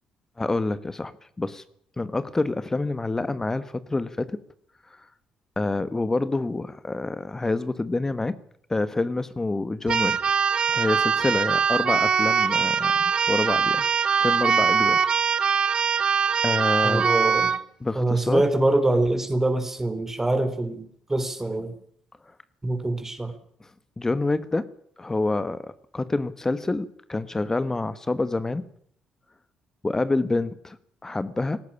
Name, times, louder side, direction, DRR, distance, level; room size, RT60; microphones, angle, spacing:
voice 1, 0.4-1.1 1.4-1.6 2.0-4.4 5.6-8.4 8.7-10.2 10.7-13.8 14.2-15.0 16.4-17.1 17.8-18.4 23.6-23.7 24.0-24.7 25.0-25.7 25.9-28.6 29.8-30.8 31.0-31.6, left 2 dB, 25° left, 1.4 m, -27 dB
Keyboard (musical), 9.9-17.6, right 6 dB, 50° right, 1.2 m, -22 dB
voice 2, 16.8-17.5 18.0-21.7 22.6-23.3, right 2 dB, 20° right, 3.6 m, -24 dB
18.5 x 14.5 x 10.0 m
supercardioid pair, 55°, 2 cm